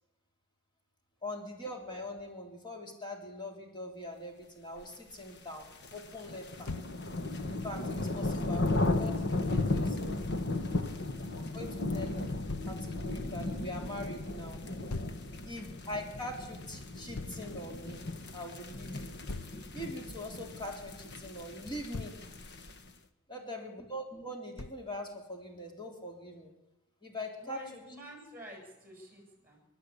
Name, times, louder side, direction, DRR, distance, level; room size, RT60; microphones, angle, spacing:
voice 1, 1.2-6.7 7.5-10.2 11.2-12.4 12.7-14.6 15.4-18.0 18.3-19.2 19.7-22.2 23.3-26.5 27.0-27.8, left 1 dB, 20° left, 1 dB, 3.5 m, -42 dB
sound 1, 5.4-22.9, left 2 dB, 50° left, 1.5 m, -35 dB
Thump thud, 6.7-7.0 9.8-10.0 12.5-12.8 14.9-15.2 17.1-17.4 19.3-19.6 21.7-22.2 24.6-24.9, left 3 dB, 75° left, 0.9 m, -40 dB
voice 2, 10.7-11.1 23.3-23.6 27.4-29.7, equal, 10° right, 0 dB, 7.8 m, -50 dB
29.5 x 12.5 x 8.6 m, 0.95 s
head